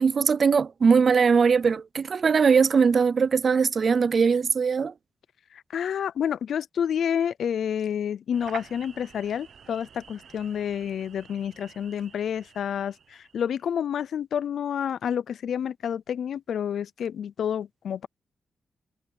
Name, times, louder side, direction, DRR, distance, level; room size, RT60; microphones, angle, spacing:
voice 1, 0.0-4.9, right 5 dB, 45° right, 0.4 m, -21 dB
voice 2, 5.5-18.1, left 8 dB, 75° left, 0.5 m, -29 dB
sound 1, 8.3-13.7, right 7 dB, 60° right, 0.8 m, -48 dB
wide cardioid pair, 140°, 0 cm